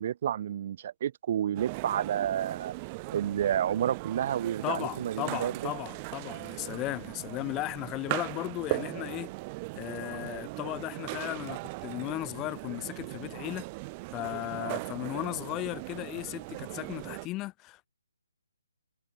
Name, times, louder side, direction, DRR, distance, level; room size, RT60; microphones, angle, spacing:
voice 1, 0.0-2.7 3.1-5.7 14.6-14.7, right 10 dB, 40° right, 1.9 m, -30 dB
sound 1, 1.6-17.3, right 26 dB, 25° right, 2.0 m, -39 dB
voice 2, 4.6-9.3 9.7-13.7 14.1-17.9, left 19 dB, 20° left, 3.7 m, -36 dB
figure-of-eight pair, 145°, 0 cm